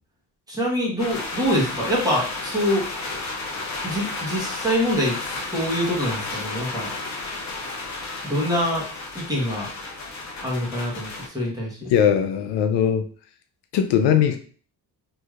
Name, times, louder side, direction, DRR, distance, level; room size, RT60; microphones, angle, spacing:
voice 1, 0.5-3.2 3.8-5.2 5.5-6.9 8.2-8.8 9.1-9.7 10.4-11.9, equal, 10° right, -5 dB, 1.0 m, -25 dB
sound 1, 1.0-11.3, left 3 dB, 45° left, 0.7 m, -32 dB
voice 2, 11.9-13.0 13.7-14.4, left 8 dB, 85° left, 7 dB, 0.5 m, -19 dB
3.1 x 2.7 x 2.3 m, 0.42 s
cardioid pair, 155°, 40 cm